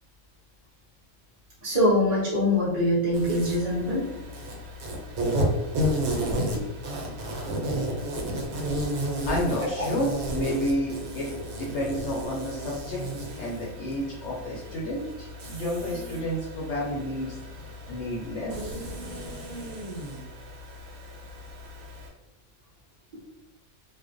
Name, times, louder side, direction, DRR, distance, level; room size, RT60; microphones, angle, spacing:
voice 1, 1.6-4.1, left 1 dB, 40° right, -8 dB, 0.6 m, -23 dB
Insect, 3.1-22.1, equal, 80° right, 1.1 m, -33 dB
voice 2, 9.2-11.3 11.6-13.0 13.3-17.4 17.9-18.6, equal, 65° left, -4 dB, 0.8 m, -30 dB
2.4 x 2.1 x 2.4 m, 0.98 s
omnidirectional pair, 1.5 m